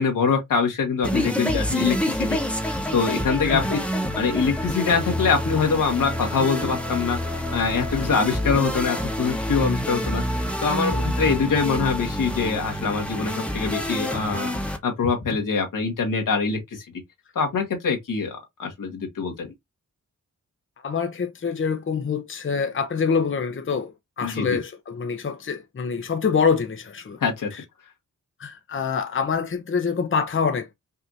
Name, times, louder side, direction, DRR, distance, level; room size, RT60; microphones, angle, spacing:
voice 1, 0.0-2.4 2.6-3.8 4.2-7.2 7.5-14.5 14.8-16.9 17.4-19.5 24.2-24.6 27.2-27.5, left 5 dB, 90° left, 1.7 m, -24 dB
sound 1, 1.0-14.8, equal, 5° left, 1.1 m, -27 dB
voice 2, 3.4-3.8 20.8-27.2 27.5-27.6 28.4-30.7, left 5 dB, 40° left, 0.7 m, -25 dB
5.6 x 2.9 x 2.6 m
cardioid pair, 70°, 31 cm